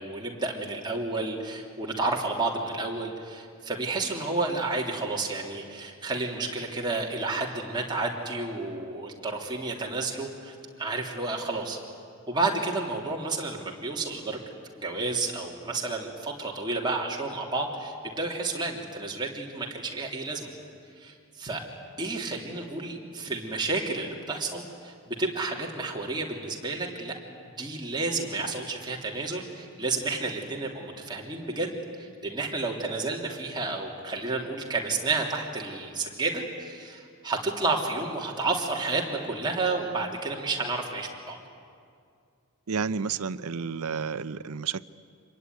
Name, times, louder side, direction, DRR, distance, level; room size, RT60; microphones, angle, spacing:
voice 1, 0.0-11.8 12.3-14.4 14.7-20.5 21.0-21.6 22.0-27.2 27.6-41.4, right 3 dB, 20° right, -1 dB, 3.1 m, -31 dB
voice 2, 42.7-44.8, right 5 dB, 80° right, 15 dB, 0.7 m, -31 dB
26.0 x 22.0 x 9.6 m, 2.3 s
head